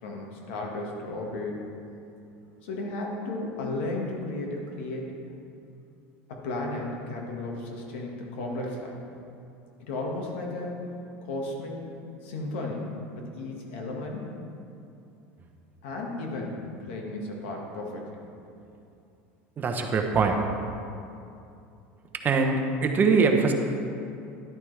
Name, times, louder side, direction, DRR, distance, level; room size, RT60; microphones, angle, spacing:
voice 1, 0.0-1.7 2.6-5.1 6.3-8.9 9.8-10.9 11.2-11.8 12.2-14.2 15.8-18.2, left 2 dB, 85° left, 0 dB, 1.8 m, -34 dB
voice 2, 19.6-20.4 22.2-23.5, right 4 dB, 30° right, 4 dB, 0.9 m, -22 dB
11.0 x 9.2 x 3.4 m, 2.6 s
supercardioid pair, 125°, 6 cm